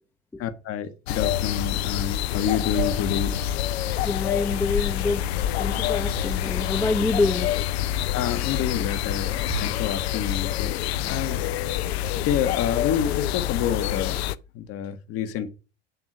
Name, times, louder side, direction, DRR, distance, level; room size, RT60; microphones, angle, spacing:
voice 1, 0.4-3.4 8.1-11.4 12.2-14.2 14.5-15.5, left 9 dB, 40° left, 1.0 m, -28 dB
sound 1, 1.1-14.4, left 12 dB, 65° left, 0.5 m, -27 dB
sound 2, 1.3-1.7 2.5-3.9 4.6-6.9 9.3-10.2, right 8 dB, 75° right, 3.6 m, -37 dB
voice 2, 4.0-5.3 5.6-7.5, left 3 dB, 5° left, 0.7 m, -26 dB
8.0 x 3.6 x 6.0 m
figure-of-eight pair, 80°, 35 cm